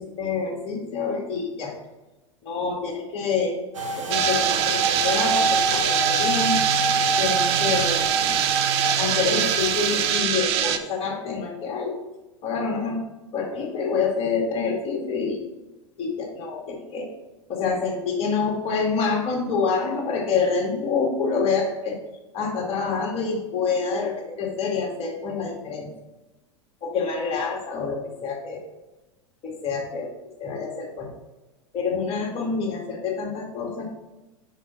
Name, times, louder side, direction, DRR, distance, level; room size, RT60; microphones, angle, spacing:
voice 1, 0.0-1.7 2.4-3.6 4.1-6.6 7.2-8.3 9.0-12.0 12.4-13.0 13.3-15.4 16.0-17.1 17.5-22.0 22.3-25.9 26.8-28.6 29.4-30.1 30.4-31.1 31.7-33.9, left 5 dB, 40° left, -1 dB, 2.2 m, -27 dB
sound 1, 3.7-10.2, right 3 dB, 85° right, 1.1 m, -26 dB
sound 2, 4.1-10.8, right 10 dB, 60° right, 0.7 m, -24 dB
6.0 x 5.7 x 4.1 m, 1.0 s
hypercardioid pair, 95°, 16 cm